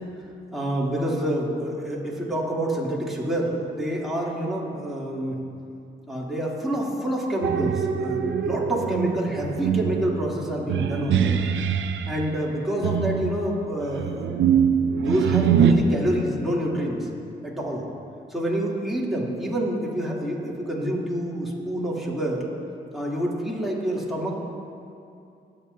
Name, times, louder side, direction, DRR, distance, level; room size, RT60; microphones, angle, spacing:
voice 1, 0.5-5.4 6.1-11.4 12.0-17.1 17.4-17.8 18.3-22.4 22.9-24.3, right 1 dB, ahead, -5 dB, 2.9 m, -27 dB
sound 1, 7.4-12.1 12.8-15.7, right 8 dB, 80° right, 0.6 m, -23 dB
20.5 x 7.8 x 2.7 m, 2.5 s
supercardioid pair, 55°, 20 cm